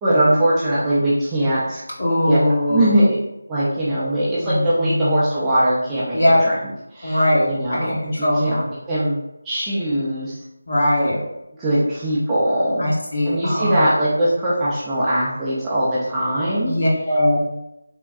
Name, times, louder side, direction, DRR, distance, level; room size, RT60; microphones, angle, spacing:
voice 1, 0.0-1.8 2.3-2.4 2.7-3.2 3.5-6.5 6.9-8.5 8.9-9.2 9.4-10.4 11.6-12.9 13.3-16.7, right 1 dB, 10° right, -10 dB, 0.4 m, -21 dB
voice 2, 2.0-3.0 4.4-5.2 6.1-6.4 7.0-8.7 10.7-11.2 12.8-13.9 16.6-17.4, left 1 dB, 50° left, -4 dB, 0.9 m, -20 dB
3.5 x 2.2 x 2.3 m, 0.87 s
figure-of-eight pair, 170°, 0 cm